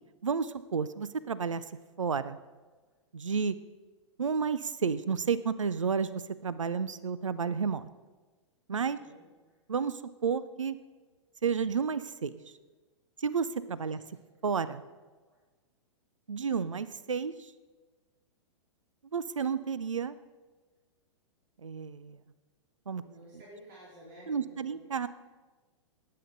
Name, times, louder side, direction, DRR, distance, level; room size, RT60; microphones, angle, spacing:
voice 1, 0.2-1.6 2.0-2.4 3.1-3.6 4.2-7.9 8.7-9.0 9.7-10.8 11.4-12.4 13.2-14.0 14.4-14.8 16.3-17.3 19.1-20.2 21.6-22.2 22.9-23.0 24.3-25.1, right 6 dB, 80° right, 16 dB, 0.5 m, -31 dB
voice 2, 9.0-9.6 10.9-11.0 13.9-14.0 15.2-15.4 23.0-24.8, right 1 dB, 40° right, -6 dB, 3.7 m, -53 dB
18.5 x 8.6 x 3.9 m, 1.3 s
figure-of-eight pair, 105°, 16 cm